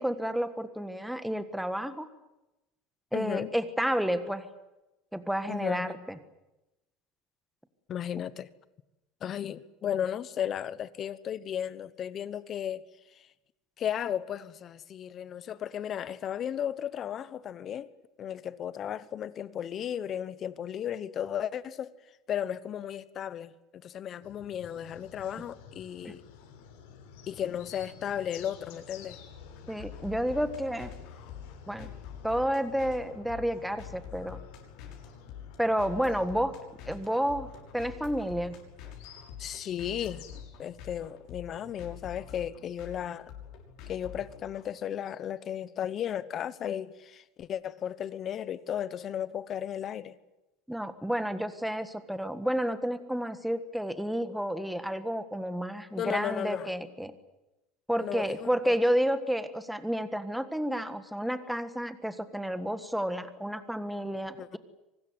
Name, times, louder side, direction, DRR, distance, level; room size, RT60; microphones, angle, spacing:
voice 1, 0.0-2.1 3.1-4.5 5.1-6.2 26.0-26.1 29.7-30.9 31.7-31.9 32.2-34.4 35.6-36.6 36.9-38.5 50.7-57.1 57.9-64.6, equal, ahead, 1.5 m, -30 dB
voice 2, 3.1-3.5 5.5-5.9 7.9-8.5 9.2-12.9 13.2-13.3 13.8-17.9 18.2-21.9 22.3-26.2 27.3-29.2 39.4-40.3 40.6-43.3 43.9-50.2 56.0-56.7 58.0-58.7 64.3-64.6, left 9 dB, 30° left, 1.1 m, -35 dB
sound 1, 24.2-40.9, left 6 dB, 80° left, 6.8 m, -51 dB
sound 2, 29.3-44.7, left 8 dB, 55° left, 6.3 m, -46 dB
24.5 x 20.0 x 9.5 m
cardioid pair, 165°, 0 cm